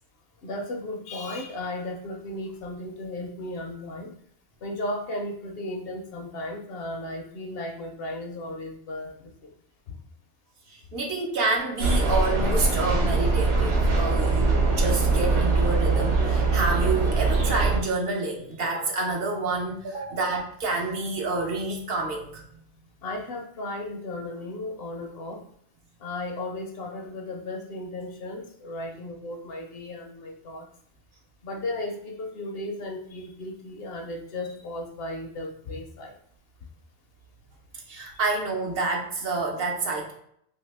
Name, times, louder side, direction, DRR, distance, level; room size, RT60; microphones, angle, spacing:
voice 1, 0.4-4.1 4.6-9.5 23.0-25.4 26.0-30.7 31.4-36.1 38.1-38.2, left 1 dB, 65° left, 2 dB, 0.7 m, -35 dB
voice 2, 10.7-22.6 37.9-40.1, right 3 dB, 60° right, 0 dB, 0.8 m, -28 dB
sound 1, 11.8-17.8, right 3 dB, 90° right, 1.1 m, -22 dB
2.7 x 2.7 x 3.2 m, 0.68 s
omnidirectional pair, 1.2 m